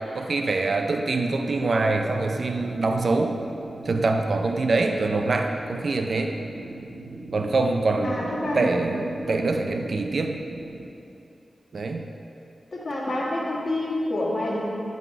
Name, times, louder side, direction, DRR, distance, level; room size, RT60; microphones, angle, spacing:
voice 1, 0.1-3.4 3.9-6.4 7.3-8.3 8.5-10.4 11.7-12.1, right 3 dB, 65° right, 4 dB, 0.4 m, -24 dB
sound 1, 1.3-10.9, right 2 dB, 85° right, 0.8 m, -40 dB
voice 2, 8.0-8.7 12.7-14.7, left 1 dB, 50° left, -5 dB, 1.5 m, -27 dB
9.2 x 3.9 x 4.7 m, 2.7 s
wide cardioid pair, 100°, 0 cm